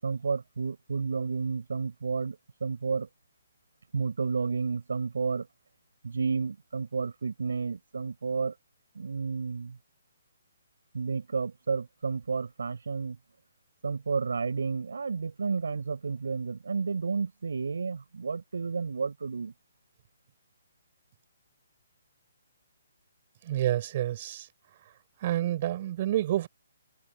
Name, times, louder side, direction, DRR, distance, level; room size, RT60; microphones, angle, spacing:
voice 1, 0.0-3.1 3.9-5.5 6.0-8.5 8.9-9.8 10.9-13.2 13.8-19.5, right 5 dB, 80° right, 5.6 m, -31 dB
voice 2, 23.4-24.5 25.2-26.5, right 13 dB, 40° right, 5.6 m, -28 dB
hypercardioid pair, 150°, 0 cm